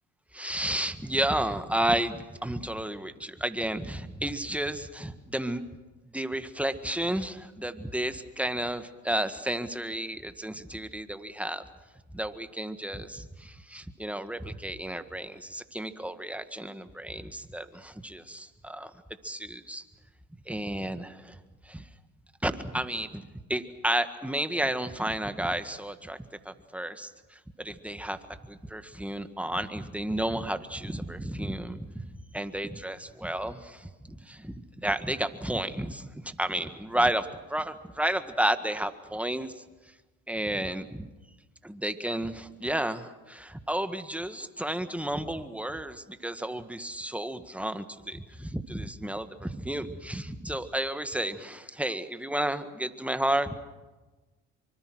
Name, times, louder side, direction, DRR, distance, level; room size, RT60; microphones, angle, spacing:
voice 1, 0.3-5.6 6.1-11.7 12.1-18.9 19.2-19.8 20.5-21.4 21.7-21.9 22.4-26.2 26.5-28.2 28.5-39.6 40.3-41.1 41.6-53.5, right 1 dB, 5° right, 10 dB, 1.7 m, -32 dB
25.0 x 24.5 x 6.3 m, 1.2 s
supercardioid pair, 80°, 35 cm